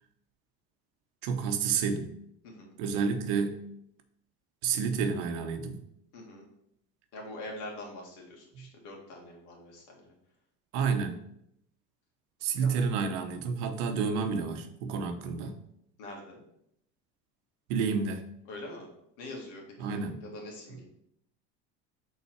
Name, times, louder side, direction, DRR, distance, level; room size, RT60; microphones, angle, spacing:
voice 1, 1.2-2.1 2.8-3.6 4.6-5.8 10.7-11.2 12.4-15.6 17.7-18.2 19.8-20.2, right 5 dB, 90° right, 7 dB, 0.9 m, -30 dB
voice 2, 6.1-6.4 7.1-10.1 12.6-12.7 16.0-16.4 18.5-18.9 19.2-20.8, left 1 dB, 75° left, 0 dB, 2.1 m, -44 dB
5.6 x 3.8 x 4.6 m, 0.75 s
cardioid pair, 140°, 33 cm